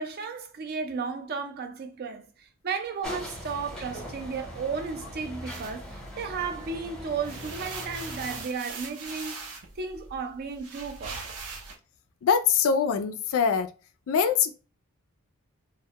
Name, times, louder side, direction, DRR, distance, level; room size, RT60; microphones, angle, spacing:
voice 1, 0.0-11.3, right 5 dB, 45° right, 0.4 m, -34 dB
sound 1, 3.0-8.4, equal, 5° left, 0.7 m, -41 dB
sound 2, 5.5-6.7 7.1-11.8, right 4 dB, 85° right, 0.6 m, -41 dB
voice 2, 12.2-13.7 14.1-14.5, left 6 dB, 65° left, 0.3 m, -23 dB
2.1 x 2.1 x 2.8 m
head